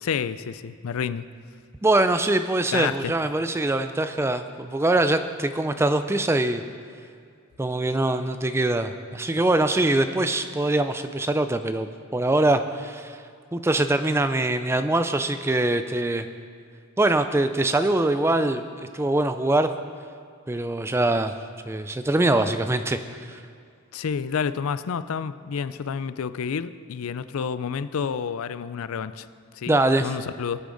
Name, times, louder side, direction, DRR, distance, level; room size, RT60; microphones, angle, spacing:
voice 1, 0.0-1.2 2.7-3.1 23.9-29.3 29.5-30.6, left 6 dB, 75° left, 14 dB, 0.4 m, -29 dB
voice 2, 1.8-6.6 7.6-13.2 13.5-16.3 17.0-18.6 18.9-19.7 20.5-21.3 21.7-23.4 29.7-30.1, right 2 dB, 10° right, 9 dB, 0.3 m, -23 dB
19.0 x 8.3 x 3.9 m, 2.3 s
head